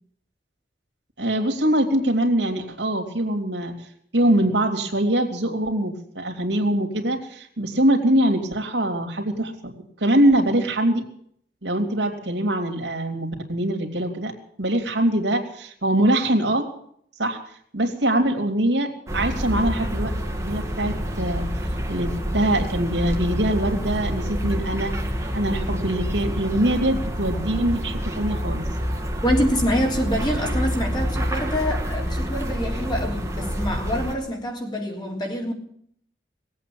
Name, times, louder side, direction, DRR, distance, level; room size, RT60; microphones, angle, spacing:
voice 1, 1.2-3.7 4.1-11.0 11.6-14.3 14.6-16.7 17.2-17.4 17.7-20.1 20.4-21.5 21.9-24.9 25.3-28.6, right 1 dB, 80° right, 2.9 m, -23 dB
sound 1, 19.1-34.2, equal, 15° right, 1.8 m, -27 dB
voice 2, 29.2-35.5, equal, 25° left, 3.2 m, -26 dB
19.5 x 8.6 x 8.6 m
head